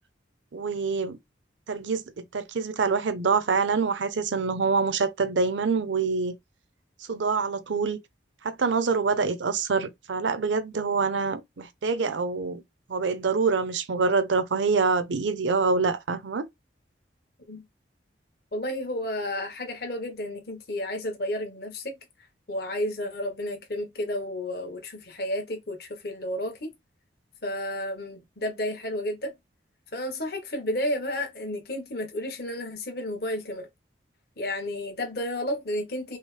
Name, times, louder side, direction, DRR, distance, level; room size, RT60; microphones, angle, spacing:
voice 1, 0.5-1.2 1.7-6.3 7.1-8.0 8.4-12.6 12.9-16.5, right 4 dB, 85° right, 0.6 m, -26 dB
voice 2, 18.5-22.0 22.5-26.7 27.4-29.3 29.9-33.7 34.4-36.2, left 1 dB, 55° left, 1.1 m, -32 dB
5.4 x 2.0 x 3.2 m
head